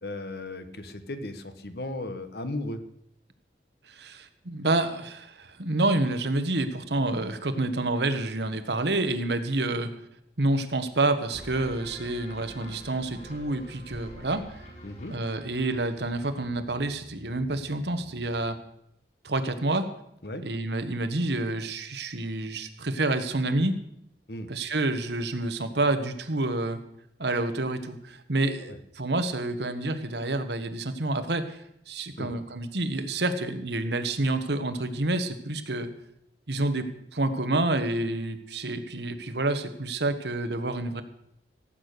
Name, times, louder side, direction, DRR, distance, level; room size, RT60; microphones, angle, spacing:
voice 1, 0.0-2.8 14.8-15.2 20.2-20.4 24.3-24.5 28.6-28.8 32.2-32.3, left 1 dB, 65° left, 10 dB, 1.3 m, -36 dB
voice 2, 3.9-9.9 10.4-14.6 15.1-18.6 19.2-19.9 20.4-23.8 24.5-26.8 27.2-35.9 36.5-41.0, right 2 dB, 75° right, 9 dB, 1.3 m, -28 dB
sound 1, 11.3-18.7, equal, 45° left, 5.7 m, -47 dB
16.5 x 8.7 x 6.7 m, 0.75 s
head